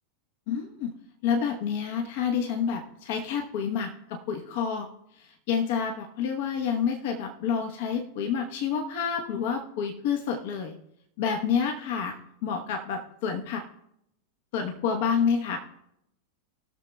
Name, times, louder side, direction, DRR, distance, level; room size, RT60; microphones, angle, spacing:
voice 1, 0.5-0.9 1.2-4.9 5.5-10.7 11.2-12.1 12.4-13.6 14.5-15.6, left 7 dB, 50° left, 3 dB, 1.1 m, -28 dB
20.0 x 6.9 x 2.3 m, 0.78 s
figure-of-eight pair, 90°, 0 cm